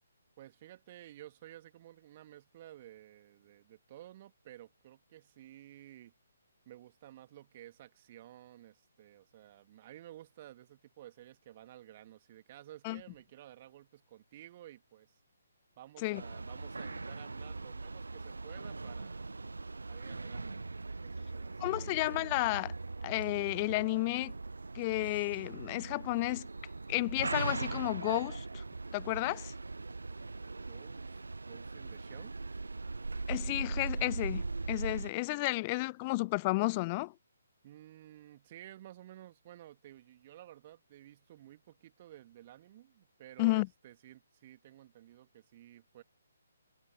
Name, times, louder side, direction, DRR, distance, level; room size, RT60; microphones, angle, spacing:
voice 1, 0.4-6.1 6.7-15.2 15.8-19.4 19.9-20.7 21.0-22.0 30.1-32.3 37.6-46.0, right 13 dB, 35° right, 2.1 m, -54 dB
sound 1, 16.1-35.1, right 3 dB, 70° right, 0.4 m, -40 dB
voice 2, 21.6-22.7 23.0-24.3 24.7-26.5 26.9-28.6 28.9-29.5 33.3-37.1 43.4-43.7, left 23 dB, 25° left, 0.4 m, -32 dB
figure-of-eight pair, 135°, 0 cm